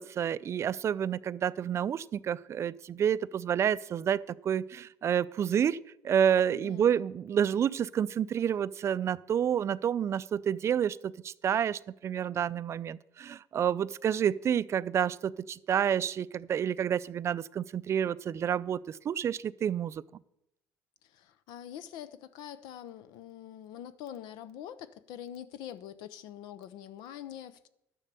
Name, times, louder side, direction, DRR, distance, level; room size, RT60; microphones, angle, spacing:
voice 1, 0.0-5.8 6.0-20.0, right 9 dB, 40° right, 0.4 m, -29 dB
voice 2, 6.5-7.0 21.0-27.7, left 10 dB, 80° left, 0.7 m, -45 dB
12.0 x 7.3 x 6.8 m
cardioid pair, 105°, 7 cm